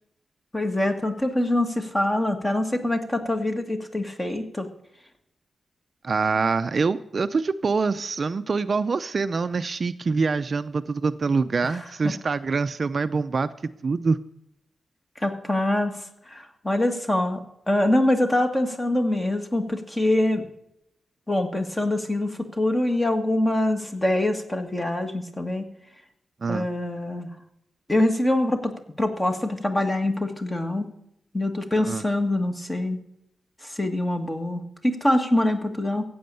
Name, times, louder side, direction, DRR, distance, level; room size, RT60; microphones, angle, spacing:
voice 1, 0.5-4.7 11.6-12.1 15.2-15.9 16.3-20.4 21.3-25.7 26.5-27.3 27.9-30.9 31.3-33.0 33.6-36.0, left 1 dB, 15° left, 5 dB, 1.8 m, -24 dB
voice 2, 6.0-13.5 13.8-14.2 26.4-26.7 31.9-32.0, right 4 dB, 45° right, 11 dB, 0.5 m, -25 dB
15.0 x 8.6 x 6.8 m, 0.78 s
wide cardioid pair, 125°, 0 cm